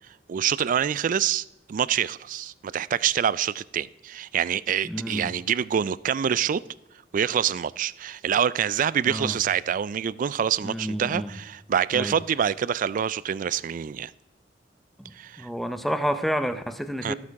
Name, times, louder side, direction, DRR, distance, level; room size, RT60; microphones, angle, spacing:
voice 1, 0.3-6.6 7.1-14.1 15.1-15.5 17.0-17.1, right 8 dB, 45° right, 0.3 m, -26 dB
voice 2, 4.9-5.3 9.0-9.4 10.6-11.3 11.9-12.1 15.0-17.1, equal, ahead, 0.6 m, -29 dB
13.5 x 8.5 x 4.7 m
head